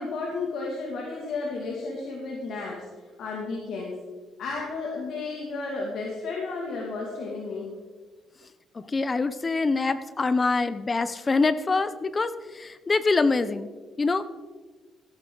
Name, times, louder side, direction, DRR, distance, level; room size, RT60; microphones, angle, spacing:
voice 1, 0.0-4.0 4.4-7.7, left 3 dB, 75° left, -2 dB, 2.2 m, -33 dB
voice 2, 8.7-13.7 14.0-14.3, left 3 dB, 30° left, 13 dB, 0.6 m, -25 dB
16.5 x 9.5 x 3.9 m, 1.4 s
cardioid pair, 90°, 0 cm